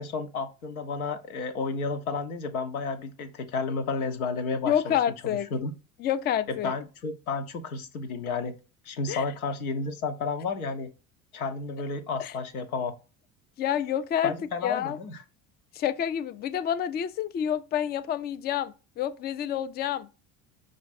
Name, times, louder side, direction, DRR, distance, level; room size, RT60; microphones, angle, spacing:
voice 1, 0.0-5.0 5.2-5.7 6.5-8.5 8.9-10.9 11.3-12.9 14.2-15.2, left 4 dB, 85° left, 0.8 m, -32 dB
voice 2, 4.7-5.5 6.0-6.7 9.1-9.2 12.2-12.3 13.6-14.3 14.6-15.0 15.7-20.1, left 10 dB, 25° left, 0.3 m, -28 dB
5.2 x 2.5 x 4.0 m
hypercardioid pair, 70°, 42 cm